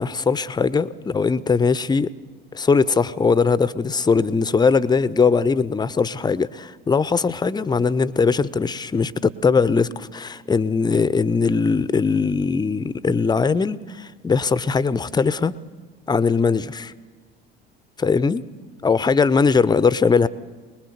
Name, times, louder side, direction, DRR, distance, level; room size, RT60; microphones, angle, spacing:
voice 1, 0.0-2.1 2.5-15.5 16.1-16.9 18.0-18.4 18.8-20.3, left 5 dB, 15° left, 18 dB, 0.7 m, -20 dB
23.0 x 21.0 x 6.7 m, 1.4 s
figure-of-eight pair, 60°, 29 cm